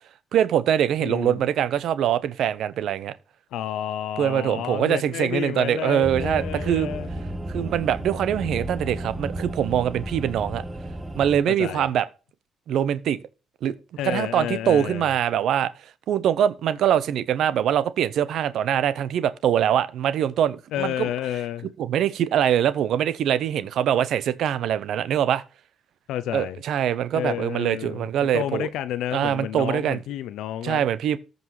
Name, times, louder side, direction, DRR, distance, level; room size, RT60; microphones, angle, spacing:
voice 1, 0.3-3.1 4.2-7.0 7.5-10.6 11.1-12.0 12.7-13.2 13.6-13.7 14.0-15.7 16.1-21.1 21.8-25.4 26.3-28.7 29.1-30.0 30.6-31.2, right 10 dB, 75° right, 0.8 m, -23 dB
voice 2, 1.0-1.4 3.5-7.1 11.5-11.9 14.0-15.1 20.7-21.7 26.1-26.6 27.1-28.1 28.3-30.8, left 11 dB, 85° left, 0.5 m, -30 dB
sound 1, 6.0-11.4, right 1 dB, 10° right, 1.2 m, -33 dB
14.0 x 5.4 x 3.1 m
cardioid pair, 90°, 0 cm